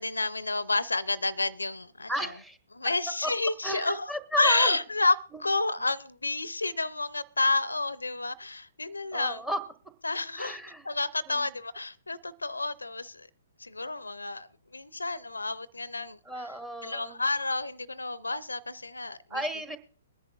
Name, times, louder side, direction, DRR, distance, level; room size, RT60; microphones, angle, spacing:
voice 1, 0.0-2.3 2.8-4.1 4.4-5.1 5.4-9.4 10.0-10.6 10.8-13.3 13.6-16.5 16.8-19.4, left 3 dB, 80° left, 0.5 m, -30 dB
voice 2, 2.1-2.6 2.8-2.9 3.2-3.3 3.6-4.8 9.1-9.6 10.4-10.9 11.3-11.4 16.2-17.2 19.3-19.8, equal, 10° right, 1.0 m, -33 dB
22.0 x 10.5 x 2.3 m
figure-of-eight pair, 120°, 0 cm